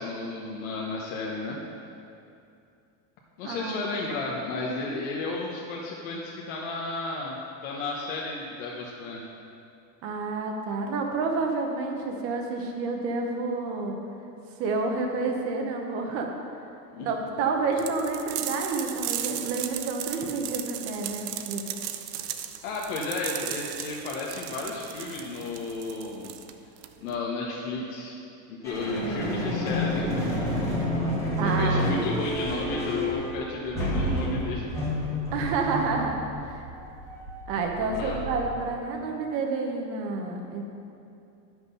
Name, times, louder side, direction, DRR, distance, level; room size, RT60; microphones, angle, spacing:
voice 1, 0.0-1.6 3.4-9.2 16.9-17.1 22.6-26.3 27.0-28.2 28.5-30.5 31.4-34.7 37.9-38.2, left 3 dB, 55° left, -3 dB, 1.1 m, -33 dB
voice 2, 3.4-3.9 10.0-14.0 14.6-16.3 17.0-21.6 31.4-32.2 35.3-36.6 37.5-40.6, right 3 dB, 30° right, 2 dB, 0.8 m, -29 dB
sound 1, 17.8-27.2, right 11 dB, 70° right, 0.8 m, -36 dB
sound 2, 28.6-38.7, equal, 5° left, 1.2 m, -30 dB
10.5 x 6.2 x 5.5 m, 2.6 s
supercardioid pair, 175°, 49 cm